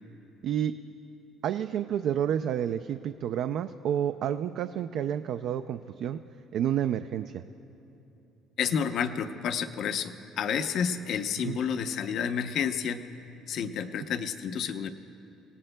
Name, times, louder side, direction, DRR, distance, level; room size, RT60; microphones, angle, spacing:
voice 1, 0.4-0.8 1.4-6.2 6.5-7.3 11.4-11.6, right 9 dB, 50° right, 9 dB, 0.3 m, -29 dB
voice 2, 8.6-13.0 13.5-14.9, left 7 dB, 50° left, 9 dB, 0.6 m, -30 dB
27.5 x 18.0 x 2.2 m, 2.9 s
cardioid pair, 170°, 0 cm